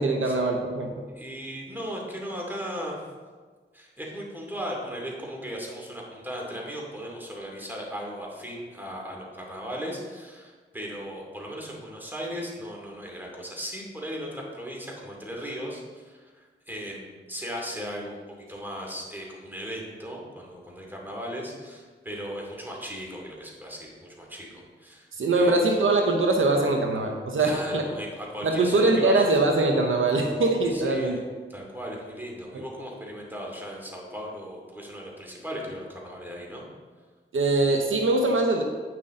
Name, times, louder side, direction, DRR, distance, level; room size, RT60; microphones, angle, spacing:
voice 1, 0.0-0.9 25.1-27.8 28.4-31.2 32.5-32.6 37.3-38.6, right 2 dB, 75° right, 3 dB, 0.8 m, -22 dB
voice 2, 1.1-3.1 3.7-18.2 18.5-25.5 27.4-29.2 30.7-31.2 31.5-36.7, equal, 10° right, -2 dB, 2.5 m, -37 dB
9.0 x 5.9 x 3.8 m, 1.4 s
cardioid pair, 40°, 21 cm